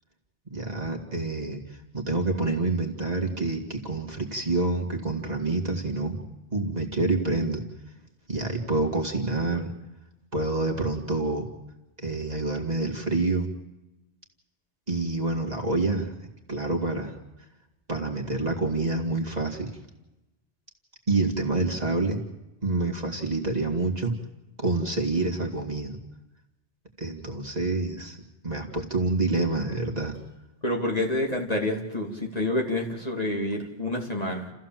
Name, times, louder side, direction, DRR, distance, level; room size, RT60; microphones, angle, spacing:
voice 1, 0.5-1.6 1.9-6.2 6.5-7.6 8.3-9.7 10.3-11.4 12.0-13.5 14.9-16.1 16.5-17.2 17.9-19.7 21.1-22.2 22.6-24.1 24.6-26.0 27.0-28.2 28.4-30.1, right 3 dB, 35° right, 1 dB, 2.4 m, -27 dB
voice 2, 30.6-34.5, left 1 dB, 35° left, 1 dB, 2.9 m, -28 dB
29.5 x 15.0 x 7.6 m, 0.99 s
omnidirectional pair, 1.2 m